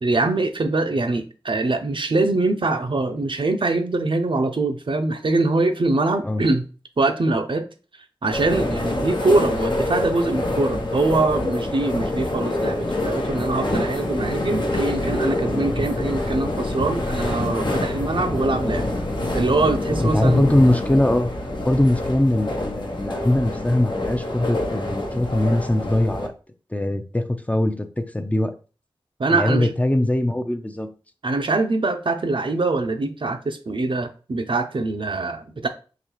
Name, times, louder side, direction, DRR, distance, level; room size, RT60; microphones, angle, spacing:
voice 1, 0.0-6.6 7.0-7.7 8.2-18.9 19.3-20.4 29.2-29.7 31.2-35.7, right 2 dB, 65° right, 0.6 m, -23 dB
sound 1, 8.3-26.3, left 1 dB, 55° left, 0.7 m, -26 dB
voice 2, 20.0-21.3 21.6-26.3 26.7-28.5 29.3-30.9, left 1 dB, 15° left, 0.5 m, -21 dB
3.9 x 3.1 x 3.1 m
wide cardioid pair, 45°, 9 cm